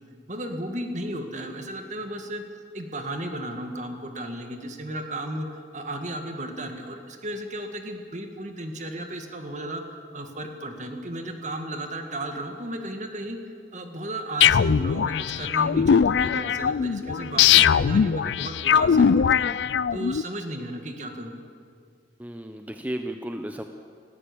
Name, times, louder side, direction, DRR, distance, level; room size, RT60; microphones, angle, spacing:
voice 1, 0.3-2.4 2.7-9.8 10.1-13.4 13.7-19.5 19.9-21.4, right 1 dB, 45° right, 5 dB, 2.0 m, -34 dB
sound 1, 14.4-20.2, left 7 dB, 85° left, 0.4 m, -20 dB
voice 2, 22.2-23.6, right 1 dB, 10° right, 6 dB, 0.7 m, -33 dB
19.0 x 16.0 x 8.6 m, 2.3 s
head